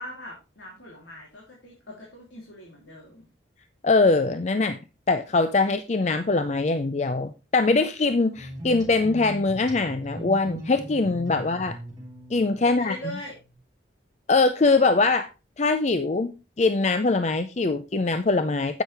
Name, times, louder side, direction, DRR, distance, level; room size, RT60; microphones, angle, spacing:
voice 1, 0.0-3.3 11.4-11.5 12.6-13.4, equal, 75° left, -3 dB, 3.2 m, -41 dB
voice 2, 3.8-4.8 5.1-11.8 12.3-12.9 14.3-15.3 15.6-16.3 16.6-18.8, left 3 dB, 35° left, 10 dB, 0.5 m, -22 dB
sound 1, 8.3-13.5, equal, 20° right, 3.0 m, -39 dB
10.0 x 8.3 x 3.4 m, 0.28 s
head